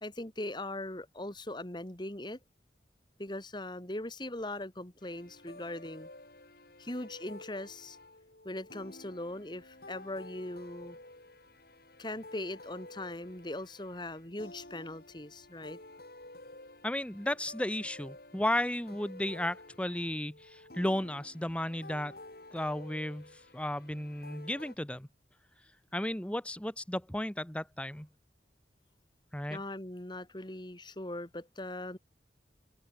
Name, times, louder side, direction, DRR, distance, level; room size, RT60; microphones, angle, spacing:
voice 1, 0.0-2.4 3.2-6.1 6.8-8.0 8.4-11.0 12.0-15.8 29.5-32.0, left 1 dB, 25° left, 2.4 m, -40 dB
sound 1, 5.0-24.7, left 2 dB, 60° left, 7.0 m, -52 dB
voice 2, 16.8-22.1 22.5-25.1 25.9-28.1 29.3-29.6, left 1 dB, 5° left, 1.0 m, -34 dB
head